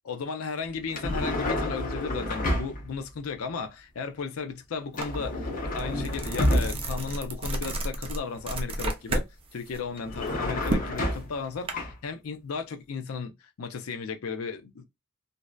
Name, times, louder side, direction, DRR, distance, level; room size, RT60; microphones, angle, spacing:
voice 1, 0.1-9.3 9.5-13.3 13.6-14.8, left 5 dB, 80° left, 0.4 m, -35 dB
sound 1, 0.9-3.0 4.9-7.1 9.9-11.5 11.7-11.9, left 1 dB, 40° left, 0.7 m, -29 dB
sound 2, 5.0-5.2 5.6-9.3 9.7-11.7, right 1 dB, 25° right, 0.4 m, -31 dB
2.6 x 2.1 x 2.2 m
head